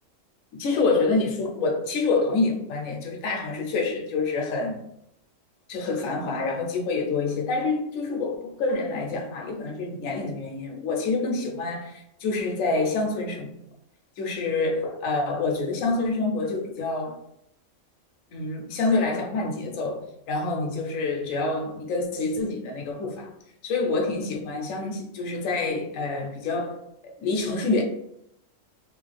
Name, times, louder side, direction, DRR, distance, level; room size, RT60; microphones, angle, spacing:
voice 1, 0.6-4.8 5.7-13.6 14.2-17.2 18.3-23.3 23.6-27.8, left 3 dB, 85° left, 1.0 m, -27 dB
3.0 x 2.4 x 3.2 m
omnidirectional pair, 1.3 m